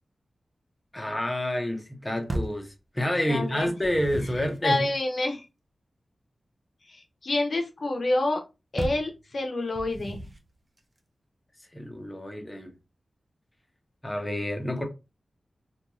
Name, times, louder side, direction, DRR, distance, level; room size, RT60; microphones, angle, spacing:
voice 1, 0.9-4.9 11.7-12.7 14.0-14.8, left 1 dB, 15° left, 0.7 m, -29 dB
sound 1, 2.3-2.7 3.6-4.6 8.8-9.1 9.7-10.5, right 1 dB, 30° right, 0.5 m, -34 dB
voice 2, 3.3-3.7 4.3-5.5 6.8-8.4 8.7-10.2, left 2 dB, 55° left, 0.5 m, -28 dB
2.5 x 2.2 x 2.9 m
wide cardioid pair, 110°, 0 cm